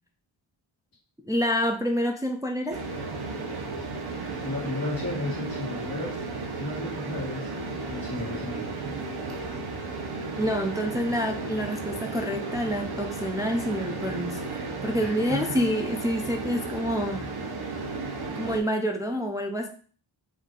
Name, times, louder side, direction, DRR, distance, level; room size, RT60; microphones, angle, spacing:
voice 1, 1.2-2.8 10.4-17.3 17.6-17.7 18.4-19.7, equal, 10° right, 3 dB, 0.4 m, -28 dB
sound 1, 2.7-18.6, right 3 dB, 55° right, 0.9 m, -34 dB
voice 2, 4.4-6.3 6.6-7.5 7.9-8.7 15.0-15.6, left 2 dB, 35° left, -10 dB, 1.7 m, -34 dB
5.4 x 2.6 x 3.8 m, 0.41 s
wide cardioid pair, 140°, 47 cm